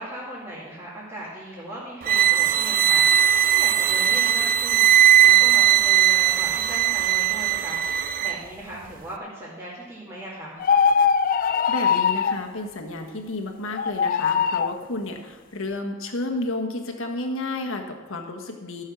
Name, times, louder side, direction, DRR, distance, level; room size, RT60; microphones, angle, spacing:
voice 1, 0.0-7.8 8.2-10.6, right 1 dB, 15° right, -9 dB, 2.4 m, -38 dB
sound 1, 2.0-8.4, right 11 dB, 40° right, 0.4 m, -19 dB
sound 2, 10.6-12.4 13.7-14.8, left 6 dB, 40° left, 0.4 m, -21 dB
voice 2, 11.4-18.8, left 2 dB, 60° left, 3 dB, 1.4 m, -31 dB
13.5 x 6.5 x 6.1 m, 1.3 s
head